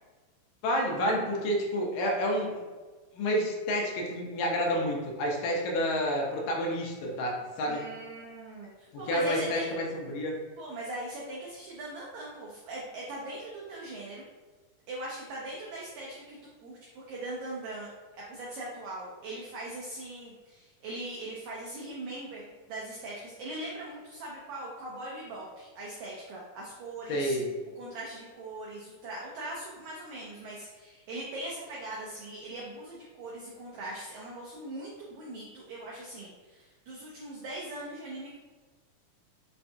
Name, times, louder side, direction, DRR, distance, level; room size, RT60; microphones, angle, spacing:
voice 1, 0.6-2.5 3.1-7.8 8.9-10.4 27.1-27.5, equal, 80° left, -1 dB, 2.3 m, -29 dB
voice 2, 7.7-9.6 10.6-14.2 14.9-17.9 18.3-27.4 27.8-38.4, right 1 dB, 85° right, -4 dB, 1.6 m, -40 dB
5.7 x 2.3 x 2.6 m, 1.3 s
omnidirectional pair, 4.0 m